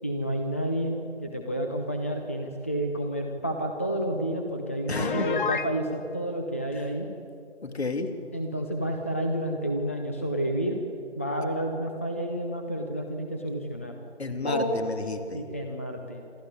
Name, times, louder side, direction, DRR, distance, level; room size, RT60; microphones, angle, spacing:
voice 1, 0.0-7.1 8.3-10.8 11.2-13.9 14.4-14.7 15.3-16.4, right 1 dB, 10° left, 3 dB, 0.5 m, -30 dB
voice 2, 4.9-5.3 6.7-6.8 7.6-8.1 14.2-15.4, left 3 dB, 60° left, 7 dB, 2.7 m, -32 dB
Piano, 4.9-5.7, left 5 dB, 45° left, 1.0 m, -29 dB
27.0 x 14.0 x 9.6 m, 2.6 s
figure-of-eight pair, 150°, 35 cm